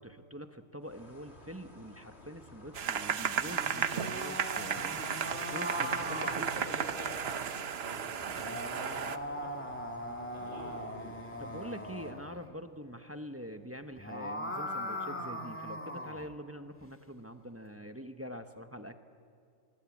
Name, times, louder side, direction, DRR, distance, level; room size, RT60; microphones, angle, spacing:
voice 1, 0.0-5.0 5.5-6.7 11.4-19.0, equal, 10° right, 7 dB, 0.9 m, -45 dB
sound 1, 0.8-12.1, left 2 dB, 50° left, 3.1 m, -55 dB
sound 2, 2.7-9.2, right 7 dB, 55° right, 1.0 m, -34 dB
sound 3, 3.4-7.2 8.2-12.4 13.8-16.3, equal, 10° left, 1.7 m, -40 dB
voice 2, 4.7-5.4 5.8-9.8 10.3-11.4, right 1 dB, 40° right, -1 dB, 7.0 m, -47 dB
24.5 x 22.5 x 8.5 m, 2.4 s
omnidirectional pair, 1.4 m